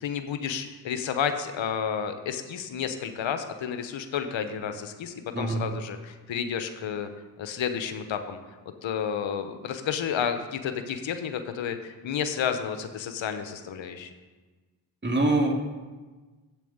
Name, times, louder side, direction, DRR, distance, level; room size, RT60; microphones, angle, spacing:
voice 1, 0.0-7.1 7.4-8.4 8.8-14.1, left 7 dB, 80° left, 8 dB, 1.1 m, -31 dB
voice 2, 15.0-15.5, right 2 dB, 25° right, 1 dB, 2.5 m, -24 dB
9.1 x 8.1 x 8.0 m, 1.3 s
cardioid pair, 50°, 45 cm